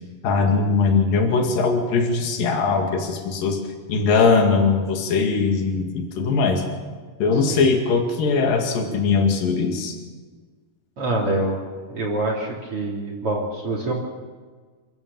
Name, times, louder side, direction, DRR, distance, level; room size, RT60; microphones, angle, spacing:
voice 1, 0.2-3.6 3.9-6.6 7.2-10.0, left 4 dB, 75° left, 3 dB, 3.8 m, -20 dB
voice 2, 11.0-11.6 11.9-13.9, right 2 dB, 40° right, -2 dB, 3.7 m, -25 dB
28.0 x 14.5 x 7.0 m, 1.5 s
omnidirectional pair, 4.0 m